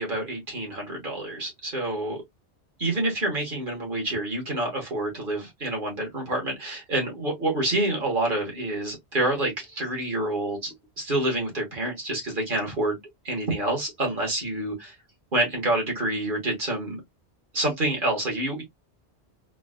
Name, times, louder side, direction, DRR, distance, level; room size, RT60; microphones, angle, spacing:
voice 1, 0.0-2.2 2.8-13.0 13.2-14.9 15.3-17.0 17.5-18.6, right 1 dB, 50° right, 1.6 m, -27 dB
3.9 x 2.3 x 2.4 m
omnidirectional pair, 1.1 m